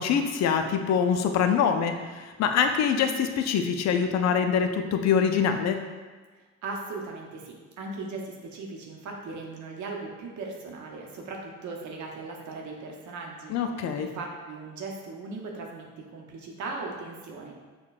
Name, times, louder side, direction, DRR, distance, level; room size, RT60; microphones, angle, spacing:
voice 1, 0.0-5.8 13.5-14.1, left 7 dB, 60° left, 6 dB, 0.4 m, -24 dB
voice 2, 6.4-13.5 13.9-17.5, right 3 dB, 75° right, 0 dB, 0.7 m, -38 dB
5.6 x 2.2 x 2.4 m, 1.3 s
cardioid pair, 90°, 30 cm